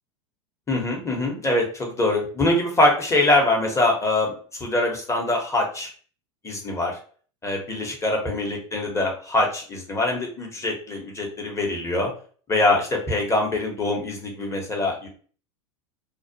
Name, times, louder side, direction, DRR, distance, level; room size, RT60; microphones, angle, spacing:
voice 1, 0.7-5.9 6.4-7.0 7.4-12.1 12.5-15.1, left 2 dB, 20° left, 0 dB, 0.9 m, -23 dB
2.3 x 2.1 x 2.7 m, 0.42 s
hypercardioid pair, 100°, 16 cm